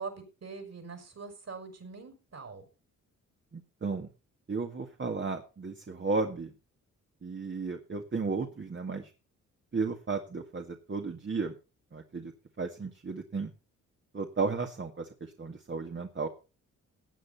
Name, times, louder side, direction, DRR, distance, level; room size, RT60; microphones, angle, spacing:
voice 1, 0.0-2.6, right 4 dB, 55° right, 5 dB, 6.2 m, -43 dB
voice 2, 3.5-4.1 4.5-6.5 7.2-9.1 9.7-11.5 11.9-12.3 12.6-13.5 14.1-16.3, right 4 dB, 35° right, 4 dB, 1.9 m, -34 dB
17.5 x 9.0 x 4.3 m, 0.32 s
cardioid pair, 70°, 31 cm